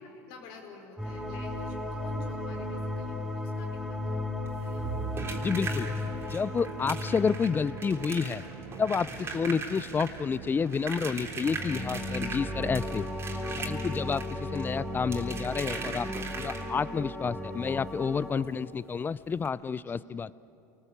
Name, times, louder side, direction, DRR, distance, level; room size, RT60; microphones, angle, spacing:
voice 1, 0.0-5.1 9.2-9.4 14.1-14.5 19.8-20.1, left 3 dB, 70° left, 2 dB, 4.8 m, -50 dB
sound 1, 1.0-10.0 11.2-18.3, left 1 dB, 5° right, 5.6 m, -36 dB
sound 2, 4.5-17.0 18.4-18.5 18.8-18.9 19.4-19.5, right 3 dB, 30° right, 3.8 m, -40 dB
Musical instrument, 4.8-13.3, right 6 dB, 70° right, 2.7 m, -43 dB
voice 2, 5.4-5.9 6.3-8.4 8.8-13.0 13.6-14.2 14.5-16.1 16.3-20.3, left 5 dB, 25° left, 19 dB, 0.5 m, -29 dB
28.0 x 20.0 x 8.2 m, 2.9 s
supercardioid pair, 100°, 9 cm